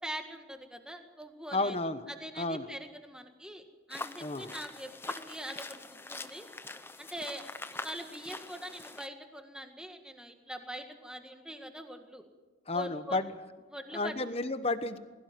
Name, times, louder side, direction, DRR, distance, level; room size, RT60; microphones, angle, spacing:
voice 1, 0.0-1.8 2.1-6.4 7.0-7.4 7.8-12.2 12.7-13.2 13.7-14.1, equal, 5° right, 5 dB, 1.7 m, -43 dB
voice 2, 1.5-2.1 2.4-2.7 4.2-4.5 12.7-13.3 13.9-15.0, left 2 dB, 30° left, 11 dB, 1.1 m, -32 dB
sound 1, 3.9-9.1, left 3 dB, 10° left, 0.7 m, -43 dB
21.0 x 16.5 x 9.4 m, 1.3 s
head